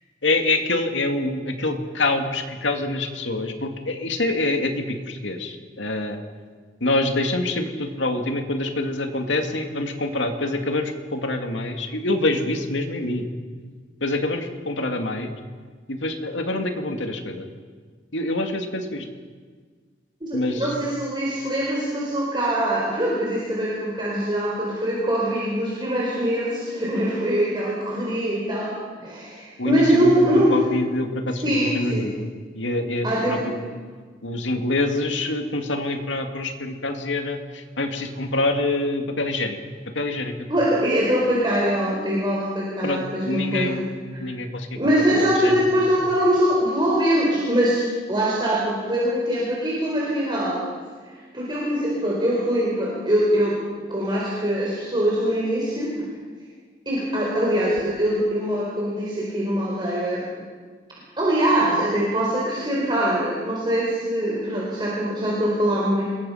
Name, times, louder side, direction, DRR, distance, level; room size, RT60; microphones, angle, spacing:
voice 1, 0.2-6.2 6.8-13.3 14.0-15.3 15.9-17.5 18.1-19.1 20.3-20.7 29.6-32.3 32.5-33.6 34.2-39.6 39.9-40.5 42.8-43.9 44.2-45.8, left 2 dB, 80° left, 5 dB, 2.4 m, -26 dB
voice 2, 20.2-30.5 31.4-32.0 33.0-33.5 40.5-43.8 44.8-50.7 51.0-53.6 53.9-56.1 56.9-60.2 61.2-66.0, equal, 25° right, -5 dB, 4.6 m, -23 dB
27.0 x 22.0 x 5.8 m, 1.6 s
head